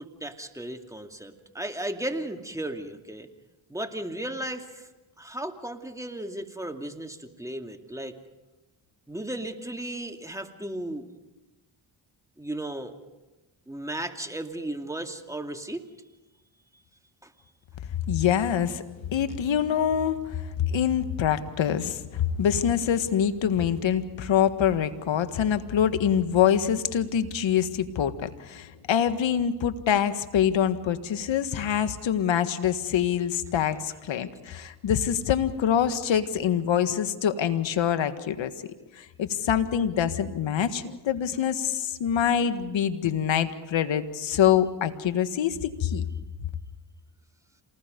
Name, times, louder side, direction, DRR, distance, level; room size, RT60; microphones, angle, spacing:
voice 1, 0.0-3.3 3.7-4.9 5.2-8.2 9.1-11.1 12.4-13.0 13.7-15.8 17.2-17.3, right 1 dB, 5° right, 4 dB, 2.6 m, -35 dB
voice 2, 18.1-18.8 19.1-38.5 38.9-46.0, left 9 dB, 65° left, 10 dB, 1.7 m, -25 dB
27.5 x 20.0 x 5.3 m, 1.1 s
supercardioid pair, 60°, 50 cm